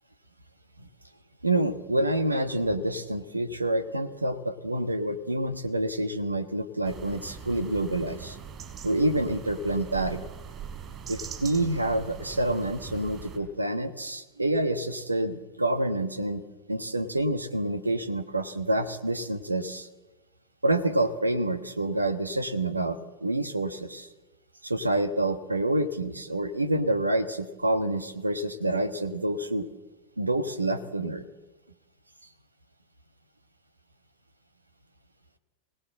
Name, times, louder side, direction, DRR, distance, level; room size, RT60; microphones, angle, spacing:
voice 1, 1.4-8.4 8.8-10.2 11.1-16.4 16.7-19.9 20.6-24.1 24.6-29.7 30.2-31.2, right 1 dB, 80° right, 9 dB, 1.4 m, -27 dB
sound 1, 6.8-13.4, right 7 dB, 30° right, 4.2 m, -42 dB
25.5 x 18.5 x 7.8 m, 1.1 s
figure-of-eight pair, 90°, 0 cm